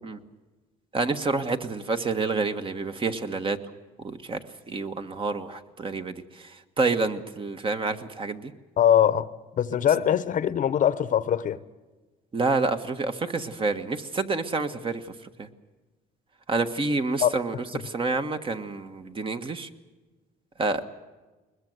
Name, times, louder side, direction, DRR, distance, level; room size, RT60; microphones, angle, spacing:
voice 1, 0.9-3.6 4.0-4.4 4.7-6.2 6.8-8.5 12.3-15.0 15.4-15.5 16.5-17.5 17.8-19.7 20.6-20.8, right 3 dB, 30° right, 8 dB, 1.5 m, -28 dB
voice 2, 8.8-9.3 9.6-11.6 17.2-17.3, left 9 dB, 50° left, 15 dB, 0.9 m, -22 dB
21.5 x 21.0 x 8.0 m, 1.2 s
cardioid pair, 110°, 17 cm